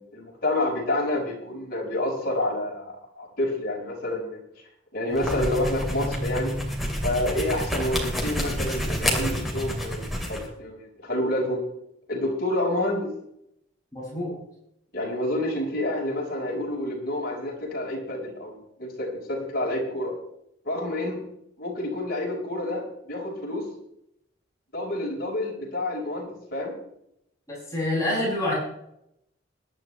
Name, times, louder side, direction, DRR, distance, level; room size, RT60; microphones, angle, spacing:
voice 1, 0.0-4.4 4.9-6.5 7.0-11.6 12.1-13.1 14.9-20.1 20.6-21.2 21.6-23.7 24.7-26.7, left 1 dB, 50° left, -3 dB, 5.4 m, -28 dB
sound 1, 5.1-10.5, equal, ahead, 2.6 m, -28 dB
voice 2, 13.9-14.3 27.5-28.5, left 1 dB, 15° left, -7 dB, 7.3 m, -27 dB
22.5 x 11.0 x 3.3 m, 0.77 s
head